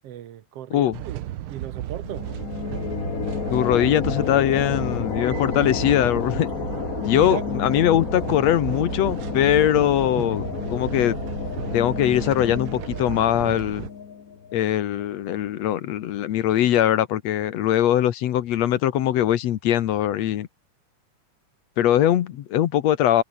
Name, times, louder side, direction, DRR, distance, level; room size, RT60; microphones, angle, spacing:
voice 1, 0.0-1.2 1.5-2.3 7.1-7.5, right 11 dB, 60° right, 2.0 m, -35 dB
sound 1, 0.9-13.9, right 13 dB, 75° right, 1.2 m, -34 dB
sound 2, 2.0-15.4, left 7 dB, 45° left, 1.1 m, -31 dB
voice 2, 3.5-6.5 7.1-11.2 11.7-13.9 14.5-20.5 21.8-23.2, left 11 dB, 65° left, 2.1 m, -21 dB
omnidirectional pair, 3.5 m